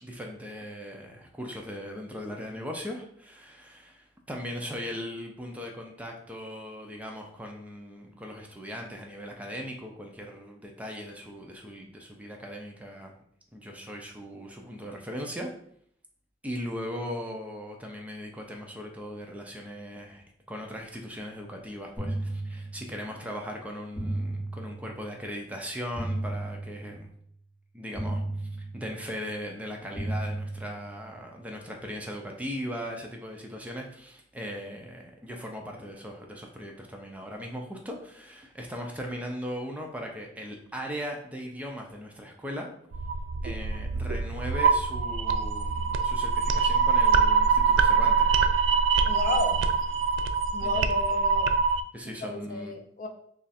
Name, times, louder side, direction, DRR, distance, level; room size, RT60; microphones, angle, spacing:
voice 1, 0.0-13.1 13.5-15.5 16.4-27.1 27.7-42.7 43.4-48.3 50.6-50.9 51.9-52.7, equal, 10° right, 1 dB, 0.5 m, -38 dB
sound 1, 22.0-23.1 24.0-25.1 26.0-27.1 28.0-29.1 30.0-31.1, right 1 dB, 15° left, 1.5 m, -34 dB
sound 2, 42.9-51.8, right 5 dB, 85° right, 0.3 m, -24 dB
voice 2, 49.1-49.6 50.5-51.5 52.2-53.1, left 3 dB, 45° left, 4 dB, 0.5 m, -32 dB
3.1 x 2.4 x 4.1 m, 0.64 s
head